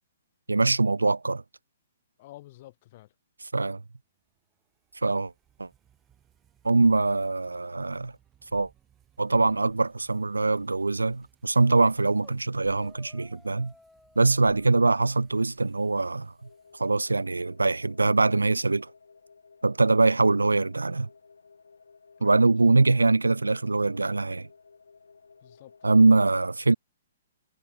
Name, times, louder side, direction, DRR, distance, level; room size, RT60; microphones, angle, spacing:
voice 1, 0.5-1.4 3.5-3.8 5.0-5.3 5.6-5.7 6.6-8.1 8.5-8.7 9.2-13.7 14.2-16.3 16.7-18.9 19.6-21.1 22.2-24.5 25.8-26.7, right 3 dB, 85° right, 0.7 m, -23 dB
voice 2, 2.2-3.1 22.2-22.8 25.4-26.0, left 16 dB, 45° left, 3.5 m, -50 dB
sound 1, 4.1-17.5, right 10 dB, 20° right, 3.2 m, -63 dB
sound 2, 12.2-12.4 12.7-15.5, left 2 dB, 5° left, 4.7 m, -57 dB
sound 3, 16.4-26.2, left 4 dB, 75° left, 4.0 m, -55 dB
figure-of-eight pair, 125°, 0 cm